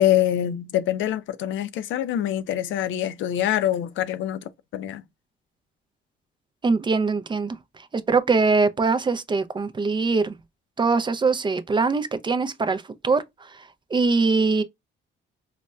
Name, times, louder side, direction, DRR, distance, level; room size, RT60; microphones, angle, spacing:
voice 1, 0.0-4.4 4.7-5.0, left 12 dB, 75° left, 0.4 m, -24 dB
voice 2, 6.6-7.6 7.9-10.3 10.8-13.2 13.9-14.6, right 4 dB, 25° right, 0.4 m, -22 dB
4.0 x 2.1 x 2.2 m
cardioid pair, 90°, 20 cm